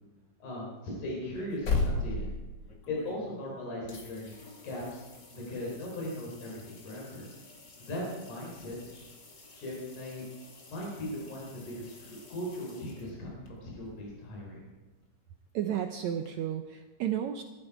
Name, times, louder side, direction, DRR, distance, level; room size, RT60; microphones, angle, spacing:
voice 1, 0.4-2.3 2.9-4.3 4.6-7.3 7.8-9.0 9.5-10.2 10.7-14.6, left 1 dB, 55° left, -3 dB, 5.7 m, -38 dB
sound 1, 1.3-3.5 3.9-13.5 16.3-16.4, left 3 dB, 35° left, 2.2 m, -39 dB
voice 2, 15.5-17.4, right 10 dB, 85° right, 6 dB, 1.6 m, -32 dB
21.0 x 13.5 x 4.9 m, 1.2 s
omnidirectional pair, 4.2 m